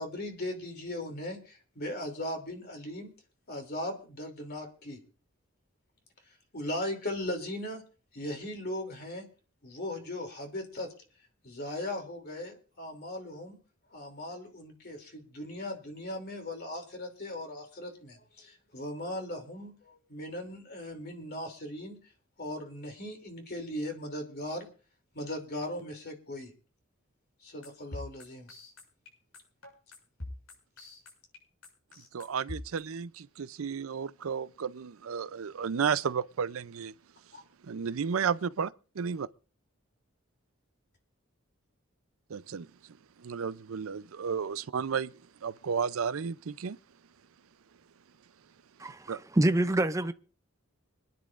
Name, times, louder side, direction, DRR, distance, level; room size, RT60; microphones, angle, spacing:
voice 1, 0.0-3.1 3.5-5.0 6.5-7.8 8.1-9.2 9.6-10.9 11.4-13.6 13.9-22.0 22.4-24.7 25.1-26.5 27.4-28.5 37.3-37.4, left 1 dB, 50° left, 2.9 m, -38 dB
sound 1, 27.6-32.8, left 2 dB, 85° left, 6.7 m, -43 dB
voice 2, 32.1-36.9 37.6-39.3 42.3-42.7 43.2-46.8 49.1-49.2, right 6 dB, 85° right, 0.5 m, -33 dB
voice 3, 48.8-50.1, right 1 dB, 15° right, 0.5 m, -26 dB
26.0 x 10.5 x 2.5 m
head